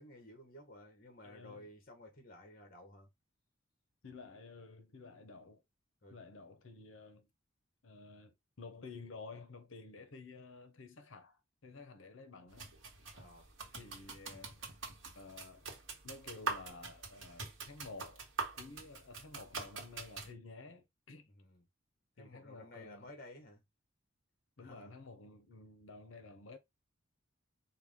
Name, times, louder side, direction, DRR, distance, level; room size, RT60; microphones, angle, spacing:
voice 1, 0.0-3.1 6.0-6.1 13.1-13.5 21.3-21.7 22.2-23.6 24.6-24.9, left 1 dB, 45° left, 1.2 m, -54 dB
voice 2, 1.2-1.6 4.0-5.6 6.1-7.3 7.8-12.7 13.7-14.6 15.2-15.7 16.0-18.2 18.5-21.3 22.2-23.1 24.6-26.6, left 3 dB, 75° left, 0.8 m, -52 dB
sound 1, 12.5-20.3, right 4 dB, 70° right, 1.1 m, -44 dB
4.6 x 2.2 x 3.5 m
head